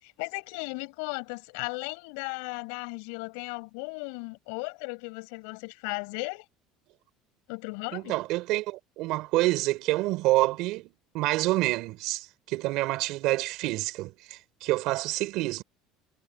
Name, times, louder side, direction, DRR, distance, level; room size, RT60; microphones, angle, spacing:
voice 1, 0.0-6.4 7.5-8.1, left 33 dB, 85° left, 6.4 m, -36 dB
voice 2, 7.9-15.6, right 19 dB, 65° right, 4.4 m, -28 dB
cardioid pair, 135°, 0 cm